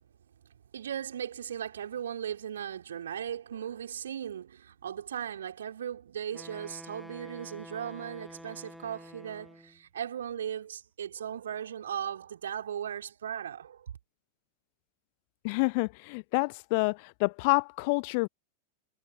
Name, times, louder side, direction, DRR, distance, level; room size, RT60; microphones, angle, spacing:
voice 1, 0.7-13.9, right 9 dB, 65° right, 5.5 m, -37 dB
Wind instrument woodwind instrument, 6.3-9.8, equal, ahead, 2.6 m, -48 dB
voice 2, 15.4-18.3, left 30 dB, 45° left, 0.5 m, -28 dB
figure-of-eight pair, 90°, 0 cm